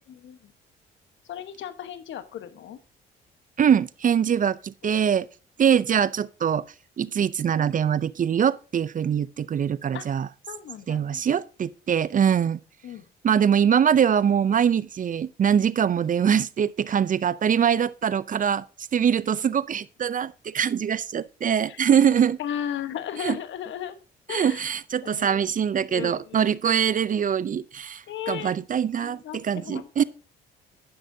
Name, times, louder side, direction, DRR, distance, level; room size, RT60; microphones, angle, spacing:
voice 1, 1.3-2.8 9.9-10.1 10.5-11.2 12.8-13.0 21.7-21.8 22.4-24.0 24.3-24.7 25.0-25.4 25.9-26.5 28.1-28.6 29.0-30.0, left 10 dB, 65° left, 1.2 m, -35 dB
voice 2, 3.6-5.3 5.6-6.7 7.0-10.3 10.9-12.6 13.2-18.6 18.9-22.4 23.2-23.4 24.3-30.0, right 8 dB, 40° right, 0.5 m, -23 dB
10.5 x 10.5 x 2.7 m
supercardioid pair, 60°, 21 cm